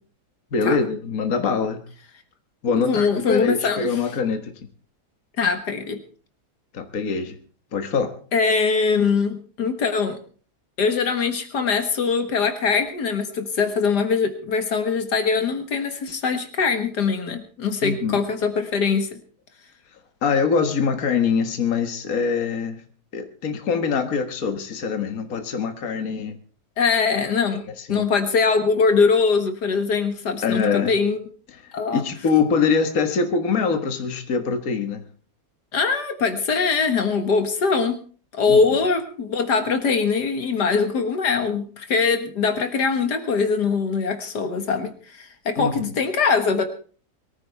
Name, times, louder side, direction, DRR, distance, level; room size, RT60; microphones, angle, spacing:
voice 1, 0.5-1.8 2.6-4.5 6.7-7.4 7.7-8.2 17.8-18.2 20.2-22.8 23.1-26.4 27.5-28.0 30.4-30.9 31.6-35.1 38.5-38.6 45.6-46.0, left 5 dB, 55° left, 6 dB, 1.9 m, -24 dB
voice 2, 2.8-4.0 5.4-6.0 8.3-10.2 10.8-19.2 26.8-31.3 31.7-32.0 35.7-38.0 38.3-46.6, left 5 dB, 75° left, 7 dB, 2.1 m, -22 dB
23.0 x 14.5 x 3.4 m, 0.41 s
omnidirectional pair, 1.8 m